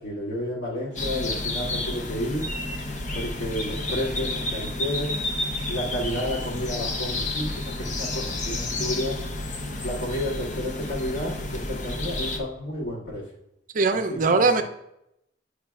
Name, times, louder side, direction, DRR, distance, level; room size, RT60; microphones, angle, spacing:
voice 1, 0.0-2.4 3.1-5.2 5.7-9.2 9.8-13.2 14.1-14.2, left 1 dB, 75° left, -6 dB, 2.3 m, -31 dB
sound 1, 1.0-12.4, left 2 dB, 45° left, 0.6 m, -30 dB
voice 2, 13.7-14.6, right 4 dB, 45° right, 7 dB, 0.5 m, -20 dB
9.4 x 4.7 x 2.3 m, 0.81 s
head